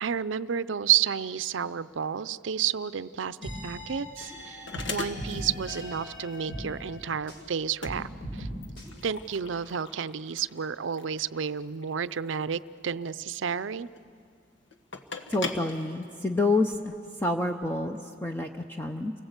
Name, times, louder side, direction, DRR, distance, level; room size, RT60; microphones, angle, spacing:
voice 1, 0.0-3.4 3.6-4.6 4.9-8.5 9.0-13.9, right 8 dB, 85° right, 15 dB, 0.5 m, -30 dB
sound 1, 3.4-16.7, left 4 dB, 80° left, 1.5 m, -42 dB
sound 2, 3.4-7.5 7.8-8.9, equal, 65° left, 6.6 m, -39 dB
voice 2, 15.3-19.1, left 2 dB, 10° left, 3 dB, 0.7 m, -28 dB
29.0 x 20.0 x 8.1 m, 2.5 s
head